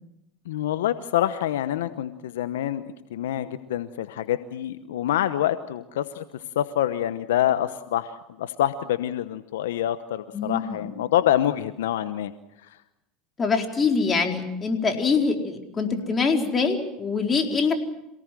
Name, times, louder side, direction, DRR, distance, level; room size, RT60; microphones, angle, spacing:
voice 1, 0.5-2.8 3.1-6.2 6.5-12.3, left 12 dB, 80° left, 12 dB, 1.0 m, -26 dB
voice 2, 10.3-10.8 13.4-17.7, left 4 dB, 30° left, 3 dB, 4.5 m, -24 dB
27.5 x 18.0 x 7.7 m, 0.86 s
hypercardioid pair, 85°, 0 cm